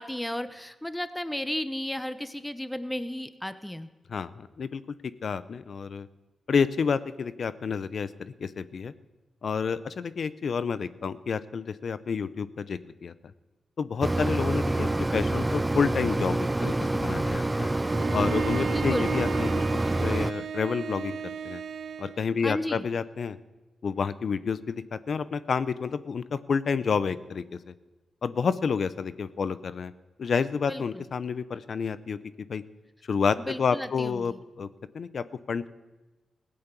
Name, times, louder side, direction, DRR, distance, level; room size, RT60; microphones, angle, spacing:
voice 1, 0.0-3.9 18.7-19.1 22.4-22.8 30.7-31.0 33.4-34.4, left 1 dB, 10° left, 12 dB, 0.9 m, -34 dB
voice 2, 4.1-4.8 5.2-6.1 6.5-8.9 9.4-13.1 13.8-17.7 18.1-21.2 21.4-21.6 22.0-23.4 23.8-27.7 28.2-29.9 30.2-32.2 32.5-32.6 33.1-34.3 34.6-34.7 34.9-35.7, left 6 dB, 65° left, 15 dB, 0.6 m, -29 dB
Mechanisms, 14.0-20.3, right 2 dB, 20° right, 0.4 m, -27 dB
Bowed string instrument, 17.8-22.2, right 7 dB, 70° right, 0.8 m, -34 dB
16.5 x 8.7 x 6.9 m, 1.2 s
supercardioid pair, 50°, 0 cm